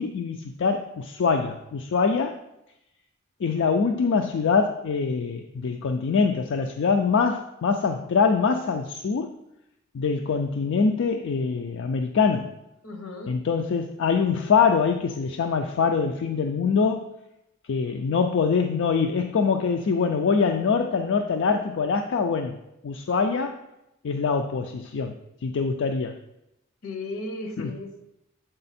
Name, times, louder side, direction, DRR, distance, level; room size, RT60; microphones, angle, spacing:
voice 1, 0.0-2.3 3.4-9.4 9.9-12.6 13.3-17.1 17.7-22.6 22.8-23.6 24.0-25.2 25.4-26.2 27.6-27.7, left 5 dB, 60° left, 5 dB, 0.4 m, -24 dB
voice 2, 12.8-13.4 26.8-28.0, left 2 dB, 80° left, 5 dB, 1.0 m, -35 dB
7.7 x 4.2 x 4.2 m, 0.87 s
head